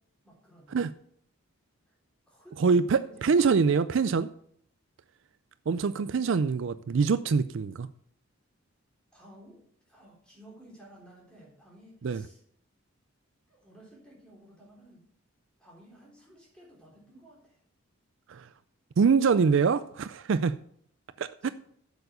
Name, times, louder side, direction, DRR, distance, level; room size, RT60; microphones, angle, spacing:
voice 1, 0.2-0.8 1.9-2.0 2.3-3.3 9.1-9.6 9.9-12.4 13.5-15.0 15.6-17.6 21.1-21.5, right 1 dB, 5° left, 3.6 m, -54 dB
voice 2, 2.6-4.3 5.7-7.9 12.0-12.2 18.3-18.5 19.0-20.6 21.2-21.5, right 5 dB, 60° right, 0.4 m, -24 dB
7.9 x 7.1 x 6.7 m
head